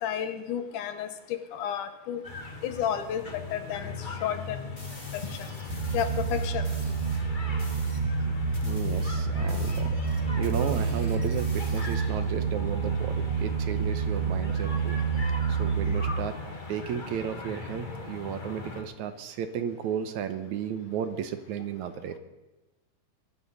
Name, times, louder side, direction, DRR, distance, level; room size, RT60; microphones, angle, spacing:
voice 1, 0.0-2.2 2.6-4.7 5.1-5.5 5.9-6.7, left 9 dB, 75° left, 9 dB, 2.6 m, -32 dB
sound 1, 2.2-18.8, left 3 dB, 30° left, 0.8 m, -40 dB
sound 2, 4.8-7.2 7.6-8.1 8.5-12.2, left 1 dB, 15° left, 2.3 m, -49 dB
sound 3, 5.7-16.1, right 5 dB, 20° right, 2.2 m, -28 dB
voice 2, 8.6-16.4 16.7-22.2, right 8 dB, 70° right, 10 dB, 2.2 m, -34 dB
23.5 x 13.5 x 4.1 m, 1.1 s
omnidirectional pair, 3.7 m